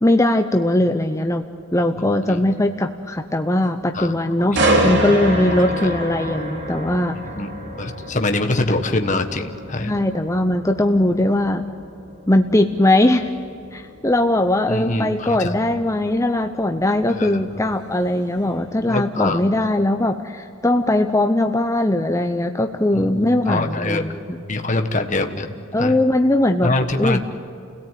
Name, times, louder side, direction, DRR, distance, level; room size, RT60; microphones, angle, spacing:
voice 1, 0.0-1.4 1.7-7.2 9.8-11.7 12.3-13.3 13.7-24.4 25.7-26.7 27.0-27.2, left 1 dB, 15° left, 5 dB, 0.8 m, -20 dB
sound 1, 4.6-18.4 18.8-19.1, equal, 55° right, 3.1 m, -27 dB
voice 2, 7.4-9.9 14.7-15.6 17.1-17.5 18.9-19.4 22.9-24.2 24.5-26.0 26.6-27.2, left 2 dB, 35° left, 6 dB, 1.4 m, -24 dB
28.5 x 17.5 x 9.3 m, 2.5 s
head